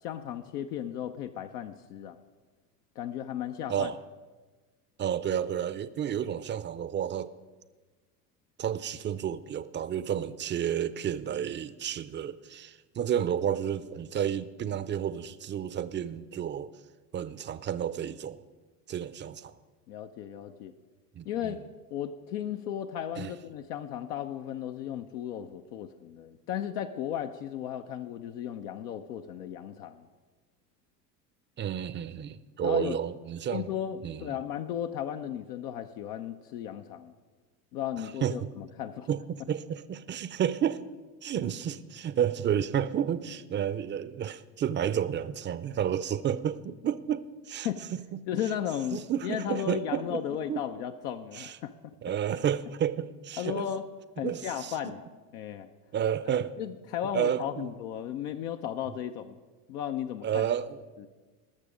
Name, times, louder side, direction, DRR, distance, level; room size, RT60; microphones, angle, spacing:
voice 1, 0.0-2.2 3.0-3.9 19.9-20.7 21.2-21.6 21.9-30.1 32.6-33.0 33.5-37.1 37.7-39.1 47.6-47.8 48.3-51.9 53.4-53.8 54.2-55.1 55.3-55.7 56.6-59.4 59.7-60.5 61.0-61.1, left 10 dB, 75° left, 0.8 m, -35 dB
voice 2, 5.0-7.4 8.6-16.7 17.1-18.4 18.9-19.5 21.1-21.6 23.2-23.3 31.6-33.8 34.0-34.2 38.2-38.5 39.1-40.8 41.2-47.7 48.1-48.2 48.9-50.6 51.3-51.6 52.0-53.6 54.2-54.9 55.9-56.5 57.1-57.7 60.2-60.8, right 9 dB, 25° right, 0.5 m, -31 dB
19.5 x 6.7 x 5.0 m
hypercardioid pair, 90°, 47 cm